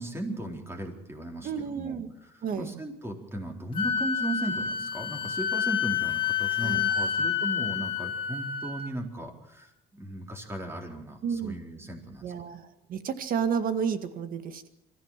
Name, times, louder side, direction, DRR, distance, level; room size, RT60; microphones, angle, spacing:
voice 1, 0.0-12.2, right 1 dB, 15° right, 2 dB, 4.1 m, -37 dB
voice 2, 1.4-2.1 2.4-2.7 6.6-6.9 11.2-11.5 12.2-12.6 12.9-14.7, right 7 dB, 55° right, 9 dB, 1.9 m, -31 dB
Wind instrument woodwind instrument, 3.7-8.9, left 7 dB, 30° left, 2.4 m, -29 dB
23.5 x 15.0 x 7.5 m, 0.86 s
cardioid pair, 110°, 17 cm